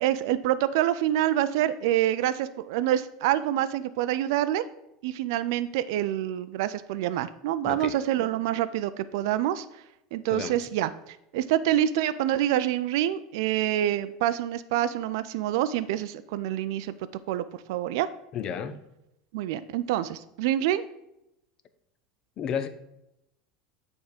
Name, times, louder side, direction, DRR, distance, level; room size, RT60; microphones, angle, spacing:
voice 1, 0.0-4.6 5.0-9.7 10.1-16.9 17.3-18.1 19.3-20.9, right 12 dB, 70° right, 13 dB, 0.3 m, -26 dB
voice 2, 7.6-8.0 10.3-10.6 18.3-18.8 22.4-22.7, left 8 dB, 30° left, 11 dB, 0.5 m, -32 dB
8.7 x 3.5 x 5.0 m, 0.86 s
supercardioid pair, 165°, 2 cm